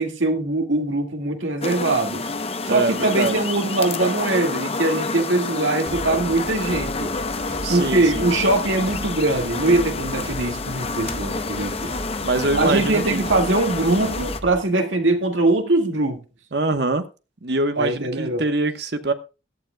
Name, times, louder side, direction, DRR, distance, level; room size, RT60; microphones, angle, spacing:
voice 1, 0.0-2.3 2.7-7.1 7.7-11.9 12.6-16.2 17.8-18.4, right 2 dB, 90° right, 2.0 m, -22 dB
sound 1, 1.6-14.4, left 3 dB, 30° left, 0.7 m, -28 dB
voice 2, 2.7-3.4 7.6-8.3 12.2-13.2 16.5-17.0 17.4-19.1, right 2 dB, 60° right, 1.1 m, -24 dB
sound 2, 5.9-14.6, right 1 dB, 35° right, 2.3 m, -36 dB
17.0 x 11.5 x 2.3 m
head